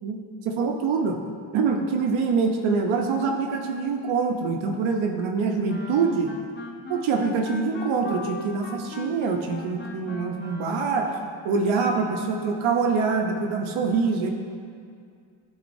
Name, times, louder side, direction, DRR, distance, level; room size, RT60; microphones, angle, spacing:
voice 1, 0.0-1.2 1.5-6.3 6.9-11.1 11.4-14.3, right 4 dB, 80° right, 3 dB, 0.8 m, -25 dB
Wind instrument woodwind instrument, 5.7-11.4, left 3 dB, 25° left, 0.5 m, -38 dB
11.0 x 4.1 x 2.6 m, 2.3 s
cardioid pair, 125°, 48 cm